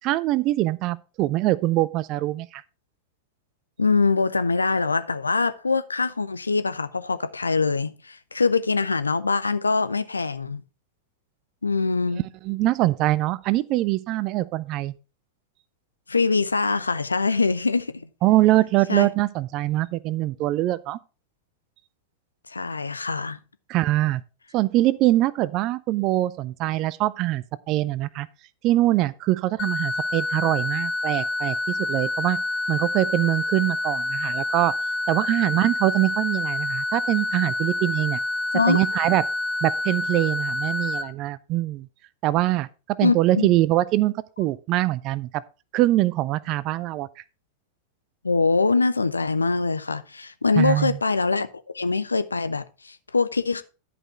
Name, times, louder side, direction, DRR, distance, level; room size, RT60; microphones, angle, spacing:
voice 1, 0.0-2.6 12.4-14.9 18.2-21.0 23.7-24.2 24.5-28.3 28.6-32.4 32.7-34.7 35.1-38.2 38.7-39.2 39.6-41.9 42.2-42.7 43.0-45.4 45.7-47.1 50.6-51.0, right 16 dB, 40° right, 0.5 m, -23 dB
voice 2, 3.8-10.6 11.6-12.2 16.1-18.1 18.9-19.1 22.5-23.4 38.5-38.8 43.0-43.5 48.2-51.5 51.7-53.6, left 4 dB, 80° left, 0.6 m, -23 dB
sound 1, 29.6-41.0, left 2 dB, 40° left, 1.4 m, -27 dB
11.0 x 5.1 x 4.5 m
figure-of-eight pair, 90°, 0 cm